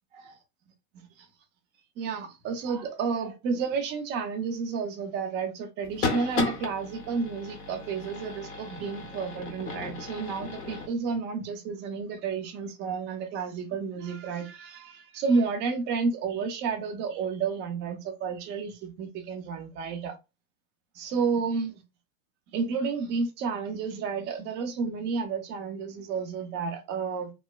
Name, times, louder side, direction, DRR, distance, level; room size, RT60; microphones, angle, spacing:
voice 1, 2.0-20.2 20.9-21.8 22.5-27.3, right 5 dB, 25° right, 0.5 m, -31 dB
sound 1, 5.8-10.9, left 4 dB, 25° left, 0.7 m, -34 dB
3.0 x 2.1 x 2.2 m
hypercardioid pair, 115°, 49 cm